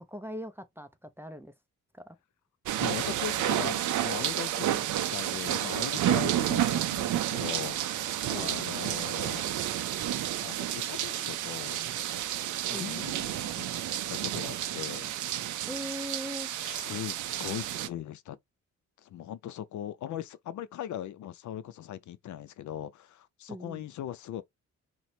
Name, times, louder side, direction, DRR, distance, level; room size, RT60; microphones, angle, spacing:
voice 1, 0.0-1.5 2.1-2.2 8.3-8.5 12.7-13.1 15.7-16.5 23.5-23.9, equal, 10° right, 0.4 m, -40 dB
sound 1, 2.7-17.9, right 12 dB, 70° right, 0.5 m, -31 dB
voice 2, 2.8-8.0 8.3-9.5 10.4-11.9 12.7-13.7 14.1-15.1 16.6-18.4 19.0-24.4, left 11 dB, 70° left, 0.4 m, -39 dB
3.1 x 2.0 x 4.1 m
cardioid pair, 110°, 31 cm